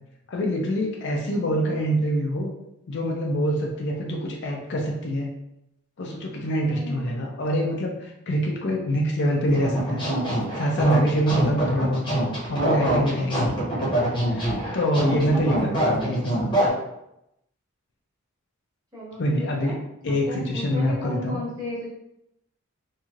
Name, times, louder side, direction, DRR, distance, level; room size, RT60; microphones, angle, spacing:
voice 1, 0.3-2.5 2.9-5.3 6.0-10.0 10.6-12.0 12.5-13.5 14.3-14.5 14.7-16.5 19.2-19.7 20.0-21.4, equal, 50° left, 0 dB, 0.4 m, -25 dB
voice 2, 1.2-1.8 6.6-7.3 15.0-15.5 18.9-19.8 20.0-21.9, left 1 dB, 15° right, -8 dB, 1.0 m, -36 dB
sound 1, 9.5-16.7, right 1 dB, 20° left, 0.8 m, -24 dB
3.0 x 2.6 x 2.3 m, 0.84 s
head